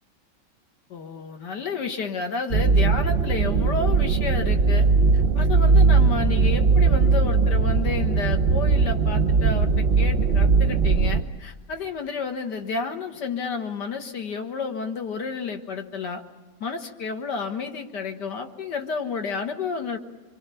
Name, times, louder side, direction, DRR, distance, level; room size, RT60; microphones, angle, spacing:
voice 1, 0.9-4.9 5.1-16.2 16.6-20.0, left 5 dB, 65° left, 5 dB, 2.1 m, -31 dB
sound 1, 2.5-11.2, right 4 dB, 45° right, 0.8 m, -19 dB
26.0 x 24.0 x 6.9 m, 1.3 s
omnidirectional pair, 2.0 m